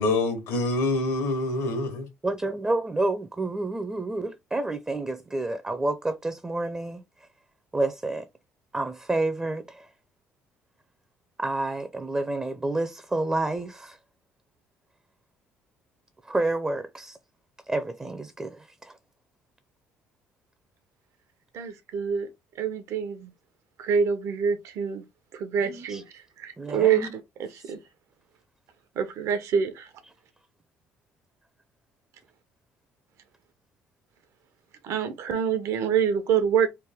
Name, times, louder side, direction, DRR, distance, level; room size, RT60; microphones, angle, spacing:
voice 1, 0.0-2.1, left 2 dB, 80° left, 1.2 m, -26 dB
voice 2, 2.2-7.0 7.7-8.3 8.7-9.9 11.4-14.0 16.2-17.2 17.7-19.0 25.6-26.0 26.6-27.1, right 2 dB, 15° right, 0.5 m, -29 dB
voice 3, 21.5-22.3 22.6-23.3 23.8-25.0 25.3-26.0 26.4-27.1 27.4-27.8 29.0-29.9 34.8-36.7, right 7 dB, 65° right, 0.8 m, -26 dB
3.3 x 2.1 x 3.4 m
supercardioid pair, 65°, 5 cm